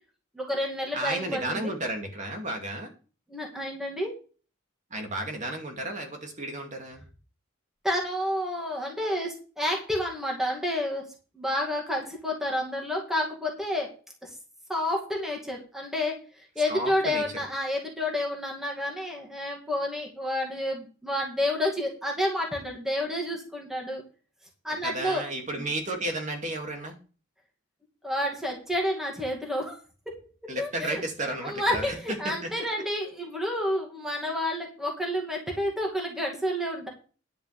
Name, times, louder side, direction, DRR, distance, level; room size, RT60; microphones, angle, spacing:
voice 1, 0.3-1.7 3.3-4.1 7.8-11.1 11.3-13.9 14.2-14.3 14.7-24.0 24.6-25.2 28.0-29.8 30.1-31.0 31.4-36.9, left 1 dB, ahead, -1 dB, 2.4 m, -30 dB
voice 2, 0.9-2.9 4.9-7.0 16.7-17.2 24.8-26.9 30.5-32.0 32.2-32.5, right 1 dB, 35° right, 3 dB, 2.5 m, -33 dB
10.5 x 5.5 x 6.7 m, 0.36 s
head